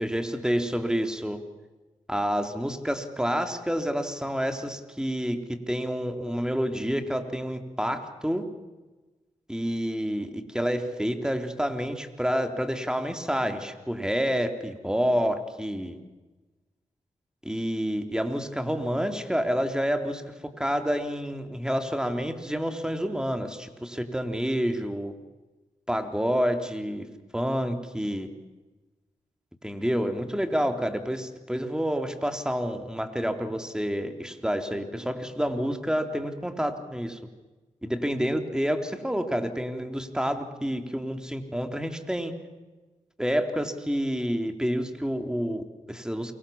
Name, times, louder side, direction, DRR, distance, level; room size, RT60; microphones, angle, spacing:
voice 1, 0.0-1.4 2.1-8.4 9.5-16.0 17.4-25.1 25.9-28.3 29.6-37.2 37.8-42.3 43.2-46.3, equal, 5° right, 6 dB, 3.9 m, -28 dB
29.0 x 23.5 x 7.4 m, 1.2 s
cardioid pair, 45°, 14 cm